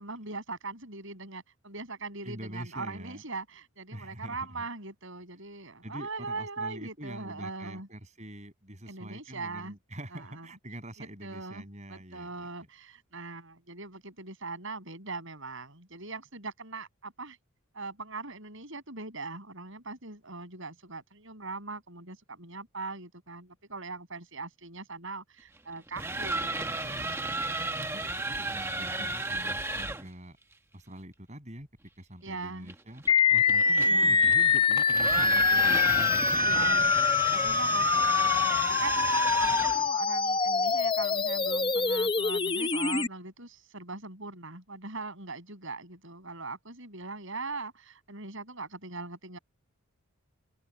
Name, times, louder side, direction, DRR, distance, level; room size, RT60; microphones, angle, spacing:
voice 1, 0.0-7.9 8.9-9.8 10.1-10.5 11.0-17.4 17.7-26.5 26.8-27.2 29.0-29.1 32.2-32.7 33.8-34.2 35.5-36.9 37.3-49.4, right 3 dB, 60° right, 7.8 m, -41 dB
voice 2, 2.2-3.2 3.9-4.7 5.8-12.5 27.8-30.4 30.7-31.7 32.0-33.0 33.3-36.8, right 1 dB, 30° right, 7.4 m, -44 dB
sound 1, 25.8-30.1 32.7-39.9, right 2 dB, 10° right, 1.2 m, -33 dB
sound 2, 33.1-43.1, left 5 dB, 20° left, 0.7 m, -24 dB
open air
head